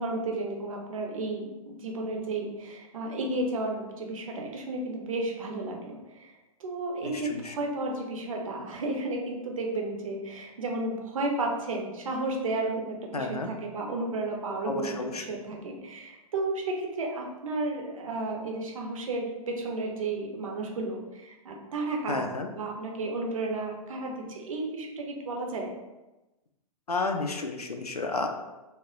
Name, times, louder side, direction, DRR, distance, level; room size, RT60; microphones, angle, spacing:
voice 1, 0.0-6.3 6.6-25.7, right 2 dB, 60° right, 0 dB, 0.6 m, -33 dB
voice 2, 13.1-13.5 14.7-15.2 22.1-22.5 26.9-28.3, left 3 dB, 85° left, 4 dB, 0.4 m, -31 dB
2.2 x 2.0 x 3.6 m, 1.0 s
figure-of-eight pair, 110°, 19 cm